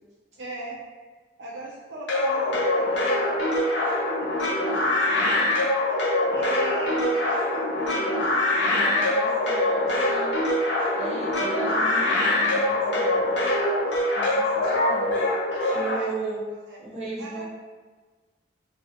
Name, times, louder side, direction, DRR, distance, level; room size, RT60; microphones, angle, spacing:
voice 1, 0.4-0.8 1.4-5.5 5.9-8.2 8.5-9.0 15.6-16.3 16.7-16.8 17.2-17.5, right 2 dB, 75° right, -4 dB, 0.4 m, -39 dB
sound 1, 2.1-16.0, left 1 dB, 75° left, 0.6 m, -24 dB
voice 2, 8.7-10.5 10.9-13.2 14.2-15.2 15.7-16.4 16.8-17.5, right 3 dB, 40° right, -7 dB, 0.7 m, -35 dB
2.2 x 2.2 x 2.7 m, 1.4 s
head